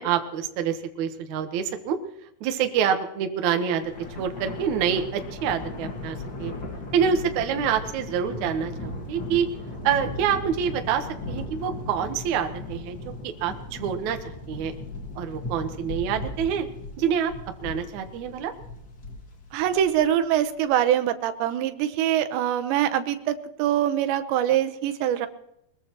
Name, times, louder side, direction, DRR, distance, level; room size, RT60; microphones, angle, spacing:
voice 1, 0.0-2.0 2.4-6.5 6.9-9.5 9.8-13.0 13.2-14.7 15.2-16.7 17.0-17.3 17.6-18.5, right 8 dB, 65° right, 6 dB, 1.9 m, -26 dB
Thunder, 3.8-20.4, left 2 dB, 60° left, 1.0 m, -37 dB
voice 2, 19.5-25.3, right 11 dB, 85° right, 8 dB, 3.2 m, -24 dB
21.5 x 21.5 x 3.0 m, 0.81 s
omnidirectional pair, 5.0 m